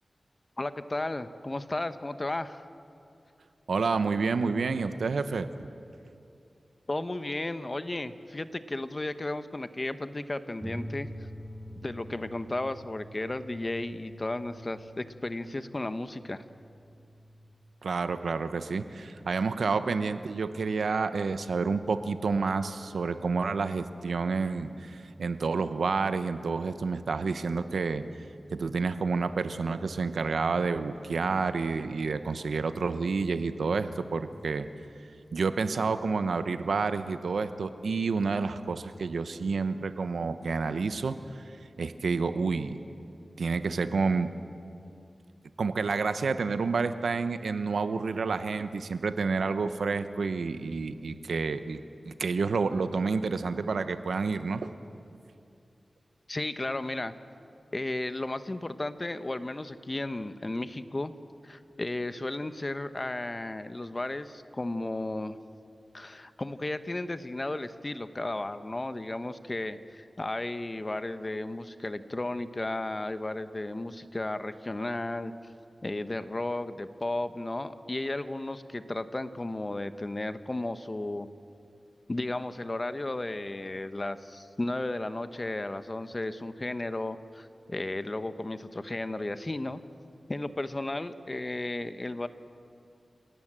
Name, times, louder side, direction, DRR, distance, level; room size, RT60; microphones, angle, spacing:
voice 1, 0.6-2.7 6.9-11.1 11.8-16.4 56.3-57.1 57.7-61.1 61.4-65.4 65.9-75.5 75.8-81.3 82.1-89.8 90.3-92.3, left 2 dB, 35° left, 11 dB, 1.1 m, -34 dB
voice 2, 3.7-5.5 17.8-28.0 28.5-34.7 35.3-42.8 43.4-44.3 45.6-54.7, right 4 dB, 90° right, 10 dB, 1.0 m, -29 dB
sound 1, 10.6-17.5, equal, 20° right, 1.6 m, -45 dB
28.0 x 17.5 x 7.6 m, 2.6 s
cardioid pair, 55°, 0 cm